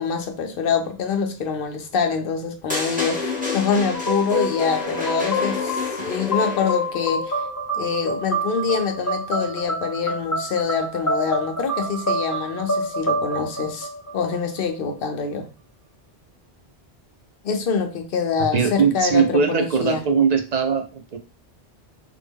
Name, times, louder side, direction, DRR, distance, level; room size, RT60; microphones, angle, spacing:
voice 1, 0.0-7.4 7.8-13.9 14.1-15.5 17.4-20.0, left 6 dB, 65° left, 0.8 m, -25 dB
sound 1, 2.7-7.0, left 3 dB, 10° right, 0.9 m, -29 dB
sound 2, 3.9-14.6, equal, 20° left, 0.7 m, -27 dB
voice 2, 18.5-21.2, right 6 dB, 55° right, 0.5 m, -20 dB
3.5 x 2.1 x 3.4 m
omnidirectional pair, 1.1 m